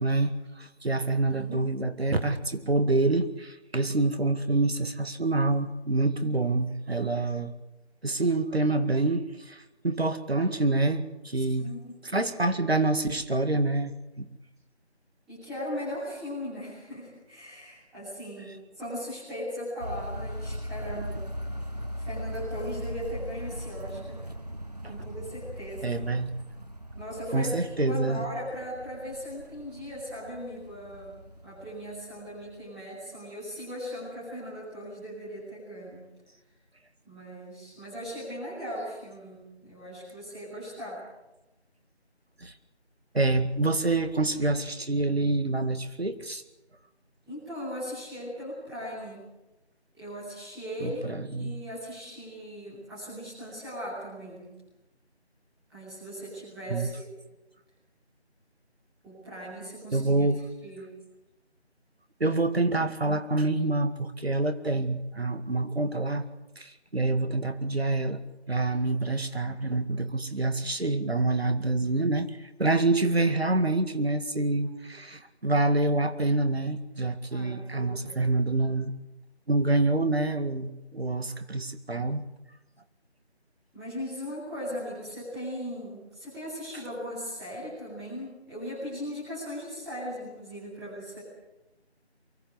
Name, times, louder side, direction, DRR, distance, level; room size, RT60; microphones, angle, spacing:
voice 1, 0.0-7.5 8.0-11.6 12.1-14.3 25.8-26.3 27.3-28.2 42.4-42.5 43.1-46.4 50.8-51.6 56.7-56.9 59.9-60.4 62.2-66.3 66.6-68.2 68.5-78.9 79.5-82.2, right 2 dB, 65° right, 9 dB, 2.0 m, -27 dB
voice 2, 1.3-1.7 11.4-12.0 15.3-21.2 22.0-24.3 24.9-26.0 26.9-31.1 31.4-36.0 37.0-41.0 47.3-49.2 49.9-51.0 51.3-54.6 55.7-57.1 59.0-60.3 60.6-61.0 77.3-78.3 83.7-91.2, equal, ahead, -13 dB, 3.0 m, -38 dB
sound 1, 19.8-32.6, equal, 35° right, 0.8 m, -39 dB
23.5 x 17.5 x 8.0 m, 0.98 s
figure-of-eight pair, 170°, 33 cm